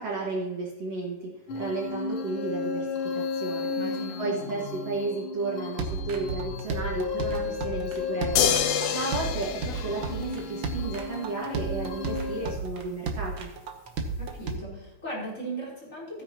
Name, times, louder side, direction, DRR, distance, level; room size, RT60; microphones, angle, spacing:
voice 1, 0.0-3.7 4.2-8.6 8.9-13.5, right 3 dB, 55° right, -3 dB, 2.6 m, -33 dB
sound 1, 1.5-12.6, left 4 dB, 65° left, 1.3 m, -34 dB
voice 2, 3.7-4.5 14.2-16.2, right 1 dB, 20° left, -6 dB, 4.0 m, -38 dB
sound 2, 5.8-14.5, right 4 dB, 80° right, 1.1 m, -33 dB
sound 3, 8.4-10.8 12.6-12.7, left 9 dB, 85° left, 1.3 m, -27 dB
16.0 x 9.3 x 2.9 m, 0.93 s
omnidirectional pair, 3.8 m